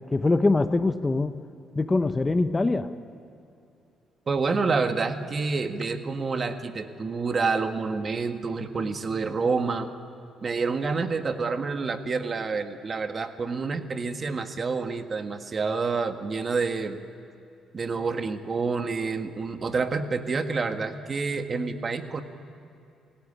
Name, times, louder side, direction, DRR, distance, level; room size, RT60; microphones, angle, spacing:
voice 1, 0.1-1.4 1.8-2.9, left 3 dB, 20° left, 10 dB, 0.9 m, -23 dB
voice 2, 4.3-9.9 10.4-17.0 17.7-22.2, right 4 dB, 35° right, 7 dB, 1.7 m, -28 dB
27.5 x 18.0 x 10.0 m, 2.6 s
cardioid pair, 100°, 0 cm